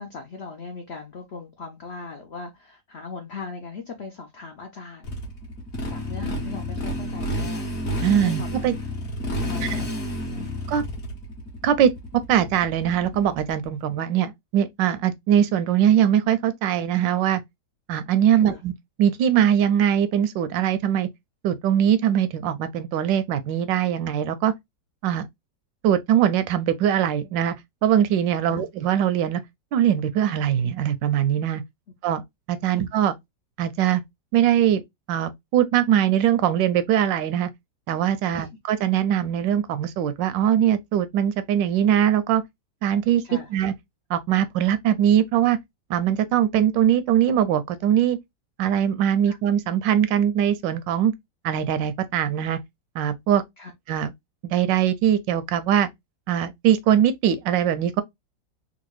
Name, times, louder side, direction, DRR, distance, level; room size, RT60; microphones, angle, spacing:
voice 1, 0.0-5.2 5.9-7.7 8.1-8.5 9.3-10.6 18.4-18.6 28.5-28.7 32.7-32.8 38.3-38.5 43.2-43.5 49.3-49.4 53.6-53.7, left 4 dB, 70° left, 0.6 m, -39 dB
Motorcycle, 5.0-13.7, left 1 dB, 50° left, 1.6 m, -30 dB
voice 2, 8.0-8.7 10.7-10.8 11.6-17.4 17.9-18.7 19.0-21.1 21.4-24.5 25.0-25.2 25.8-27.5 27.8-29.4 29.7-31.6 32.0-32.2 32.5-33.1 33.6-34.0 34.3-34.8 35.1-37.5 37.9-42.4 42.8-43.7 44.1-45.6 45.9-48.2 48.6-51.1 51.4-52.6 53.0-53.4 53.9-54.1 54.4-55.9 56.3-58.0, right 10 dB, 80° right, 1.2 m, -21 dB
3.9 x 2.3 x 3.0 m
omnidirectional pair, 2.0 m